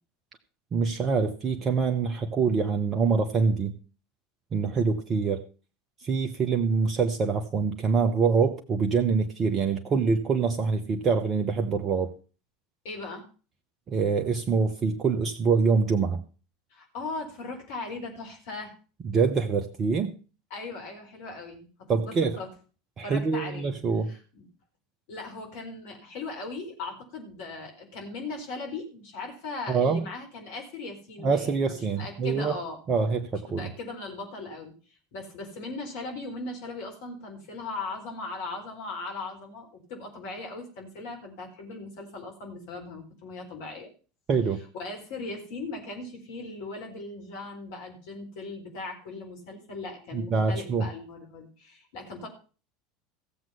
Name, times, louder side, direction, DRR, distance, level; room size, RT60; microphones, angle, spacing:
voice 1, 0.7-3.7 4.5-5.4 6.0-12.1 13.9-16.2 19.0-20.1 21.9-22.4 23.0-24.1 29.7-30.0 31.2-32.6 32.9-33.7 44.3-44.6 50.1-50.9, right 5 dB, 35° right, 5 dB, 1.1 m, -25 dB
voice 2, 12.8-13.2 16.7-18.7 20.5-22.5 23.0-23.7 24.1-24.5 25.1-32.8 33.5-34.7 35.1-43.9 44.7-52.3, left 3 dB, 60° left, 2 dB, 4.4 m, -38 dB
15.5 x 7.6 x 5.6 m, 0.37 s
figure-of-eight pair, 75°, 0 cm